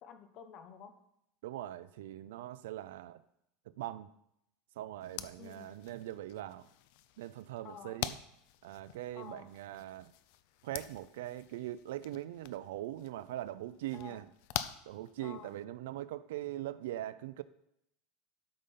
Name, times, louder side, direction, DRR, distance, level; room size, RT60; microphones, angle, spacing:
voice 1, 0.0-1.0 5.4-5.7 7.6-8.0 9.1-9.5 13.9-14.2 15.2-15.5, left 7 dB, 40° left, 9 dB, 1.1 m, -50 dB
voice 2, 1.4-3.2 3.7-4.1 4.8-6.7 7.2-8.2 8.6-10.1 10.6-14.3 14.9-17.4, right 14 dB, 90° right, 14 dB, 0.5 m, -41 dB
sound 1, 5.0-15.6, left 13 dB, 60° left, 0.5 m, -46 dB
12.5 x 5.2 x 5.7 m, 0.77 s
supercardioid pair, 165°, 0 cm